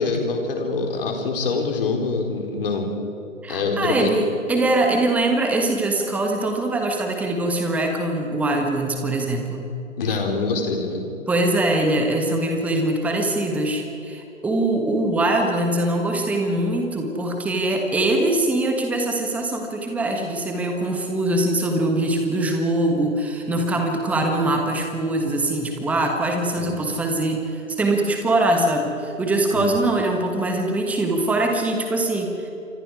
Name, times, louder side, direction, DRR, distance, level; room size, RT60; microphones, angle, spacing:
voice 1, 0.0-2.9 3.5-4.1 10.0-11.0 26.6-26.8 29.5-29.8, left 4 dB, 45° left, 2 dB, 4.3 m, -25 dB
voice 2, 3.4-9.7 10.1-10.2 11.3-32.5, right 2 dB, 5° right, 3 dB, 1.4 m, -22 dB
28.0 x 24.5 x 4.9 m, 2.9 s
figure-of-eight pair, 135°, 39 cm